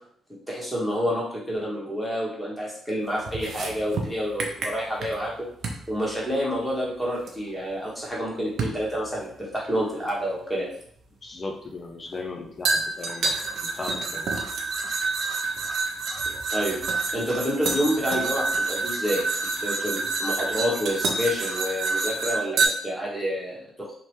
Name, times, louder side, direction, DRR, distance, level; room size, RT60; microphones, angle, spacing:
voice 1, 0.5-5.3 5.9-10.7 16.5-23.9, equal, ahead, -5 dB, 1.3 m, -28 dB
sound 1, 3.3-5.3 5.6-5.9 7.3-7.4 8.6-8.8 10.1-10.2 12.7-22.7, right 3 dB, 70° right, 0.5 m, -28 dB
voice 2, 11.2-13.3 13.6-14.3, left 3 dB, 40° left, 3 dB, 0.6 m, -37 dB
2.9 x 2.1 x 3.0 m, 0.62 s
supercardioid pair, 55°, 0 cm